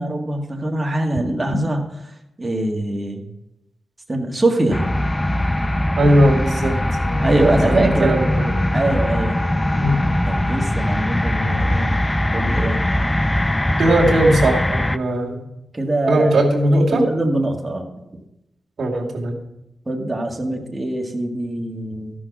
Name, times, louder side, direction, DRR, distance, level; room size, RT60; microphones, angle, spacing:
voice 1, 0.0-1.8 2.4-3.2 4.1-4.9 7.2-8.2 8.7-9.4 10.3-11.9 12.3-12.8 15.7-16.4 16.9-17.9 19.9-22.1, right 1 dB, 20° right, 1 dB, 1.8 m, -22 dB
sound 1, 4.7-15.0, left 1 dB, 15° left, 0.4 m, -21 dB
voice 2, 6.0-6.8 7.7-8.5 9.7-10.0 13.8-15.4 16.1-17.1 18.8-19.4, right 1 dB, 65° right, -3 dB, 2.4 m, -18 dB
sound 2, 6.9-11.8, left 1 dB, 85° left, 4.6 m, -38 dB
13.5 x 6.2 x 6.1 m, 0.88 s
cardioid pair, 90°, 0 cm